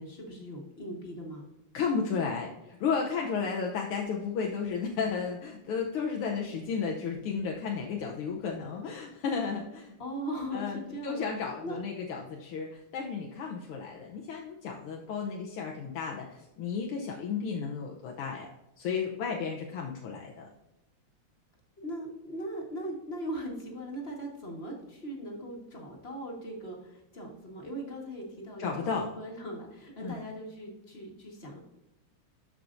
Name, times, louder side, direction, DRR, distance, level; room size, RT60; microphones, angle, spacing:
voice 1, 0.0-1.5 10.0-11.2 11.6-11.8 21.8-31.6, equal, 30° left, 0 dB, 1.5 m, -39 dB
voice 2, 1.7-9.9 10.5-20.5 28.6-29.1 30.0-30.2, left 5 dB, 80° left, 0 dB, 1.7 m, -33 dB
13.0 x 4.9 x 2.5 m, 0.93 s
omnidirectional pair, 2.4 m